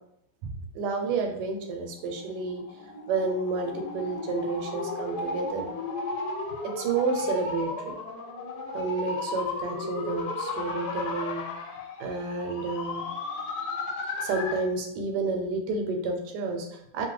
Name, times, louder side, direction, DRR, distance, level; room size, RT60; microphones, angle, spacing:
voice 1, 0.4-2.6 3.1-5.7 6.6-7.9 8.7-11.5 12.0-13.1 14.2-17.1, right 4 dB, 85° right, 4 dB, 1.2 m, -30 dB
sound 1, 2.0-14.7, left 3 dB, 80° left, 1.2 m, -34 dB
2.9 x 2.1 x 3.1 m, 0.75 s
omnidirectional pair, 1.7 m